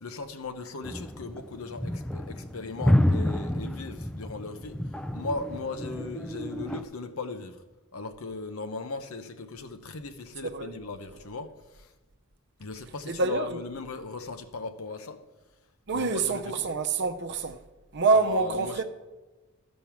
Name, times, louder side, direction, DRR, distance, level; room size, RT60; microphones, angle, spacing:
voice 1, 0.0-4.8 5.1-7.6 7.9-11.9 12.6-15.2 15.9-16.6 18.1-18.8, left 3 dB, 75° left, 0.8 m, -37 dB
sound 1, 0.8-6.8, left 1 dB, 5° left, 0.4 m, -29 dB
voice 2, 13.1-13.6 15.9-17.6 17.9-18.8, right 4 dB, 55° right, 0.8 m, -26 dB
13.0 x 5.3 x 6.0 m
head